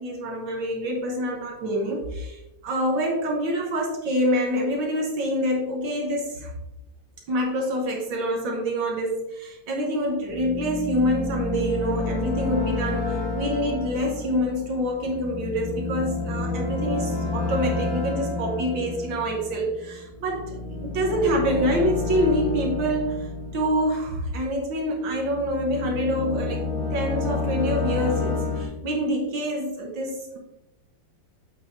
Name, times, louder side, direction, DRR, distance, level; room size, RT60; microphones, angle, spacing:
voice 1, 0.0-6.5 7.3-30.4, equal, 70° right, 0 dB, 1.8 m, -26 dB
sound 1, 10.3-24.6 25.1-28.7, left 3 dB, 65° left, 2.0 m, -30 dB
8.0 x 6.0 x 2.6 m, 0.97 s
omnidirectional pair, 2.2 m